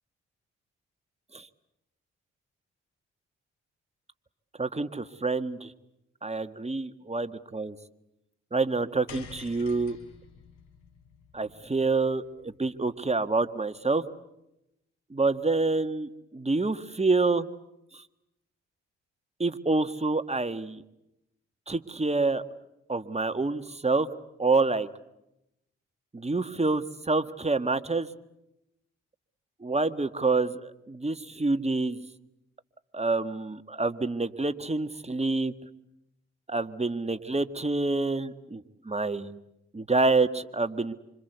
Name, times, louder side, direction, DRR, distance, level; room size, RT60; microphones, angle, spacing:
voice 1, 4.6-5.7 6.2-7.8 8.5-10.0 11.3-14.0 15.1-17.5 17.9-18.0 19.4-20.8 21.7-22.4 22.9-24.1 24.4-24.9 26.1-28.1 29.6-32.0 32.9-35.5 36.5-39.4 39.7-40.9, right 3 dB, 20° right, 10 dB, 1.8 m, -27 dB
sound 1, 9.1-13.5, left 7 dB, 75° left, 4.5 m, -50 dB
27.0 x 26.0 x 8.2 m, 0.86 s
hypercardioid pair, 40°, 30 cm